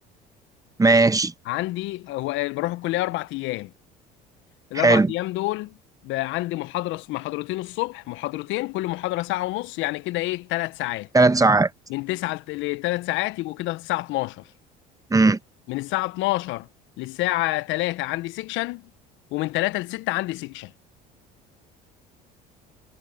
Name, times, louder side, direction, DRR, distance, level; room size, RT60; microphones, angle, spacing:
voice 1, 0.8-1.3 4.8-5.1 11.1-11.7 15.1-15.4, right 3 dB, 15° right, 1.1 m, -17 dB
voice 2, 1.4-3.7 4.7-5.8 6.0-11.1 11.9-14.4 15.7-16.7 17.0-18.8 19.3-20.7, left 19 dB, 65° left, 1.1 m, -28 dB
hypercardioid pair, 70°, 21 cm